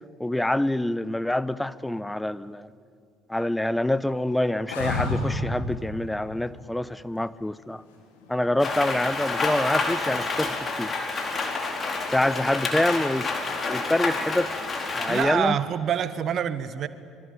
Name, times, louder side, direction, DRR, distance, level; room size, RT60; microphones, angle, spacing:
voice 1, 0.2-2.7 3.3-7.8 8.3-10.9 12.1-13.3 13.7-14.5 14.9-15.6, left 1 dB, 5° left, 0.9 m, -26 dB
sound 1, 4.7-5.6 8.2-8.8, left 2 dB, 75° left, 4.4 m, -28 dB
Rain, 8.6-15.2, left 3 dB, 35° left, 4.7 m, -28 dB
voice 2, 15.1-16.9, right 9 dB, 45° right, 1.4 m, -26 dB
26.0 x 24.0 x 9.5 m
figure-of-eight pair, 55°, 0 cm